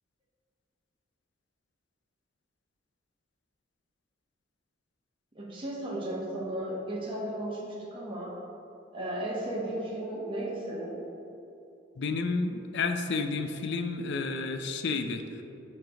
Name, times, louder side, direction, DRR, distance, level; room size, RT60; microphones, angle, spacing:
voice 1, 5.3-8.3 8.9-11.0, right 1 dB, 30° right, -5 dB, 0.9 m, -35 dB
voice 2, 12.0-15.2, left 4 dB, 65° left, 7 dB, 0.5 m, -31 dB
7.0 x 3.2 x 5.0 m, 2.8 s
head